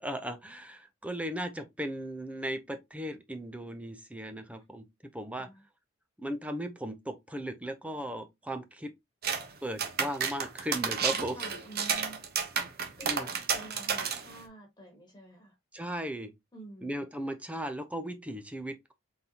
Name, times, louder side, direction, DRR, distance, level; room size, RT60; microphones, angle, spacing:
voice 1, 0.0-4.8 5.1-5.5 6.2-8.9 9.6-11.4 13.0-13.3 15.7-16.3 16.8-18.9, equal, 5° right, 0.5 m, -37 dB
sound 1, 9.2-9.5 9.8-14.4, right 6 dB, 45° right, 0.8 m, -31 dB
voice 2, 11.3-12.2 13.0-15.6 16.5-16.9, right 2 dB, 20° left, 1.4 m, -49 dB
4.0 x 3.9 x 2.8 m
head